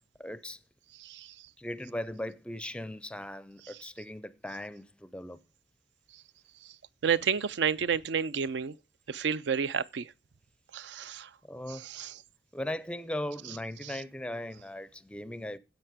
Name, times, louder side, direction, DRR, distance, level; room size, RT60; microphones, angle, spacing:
voice 1, 0.2-0.6 1.6-5.4 11.5-11.8 12.5-15.6, left 1 dB, 5° left, 0.4 m, -38 dB
voice 2, 1.0-1.3 3.7-3.8 7.0-8.7 9.1-10.1 10.7-11.3 11.7-12.2 13.8-14.0, right 7 dB, 75° right, 0.4 m, -30 dB
10.0 x 7.9 x 4.9 m
head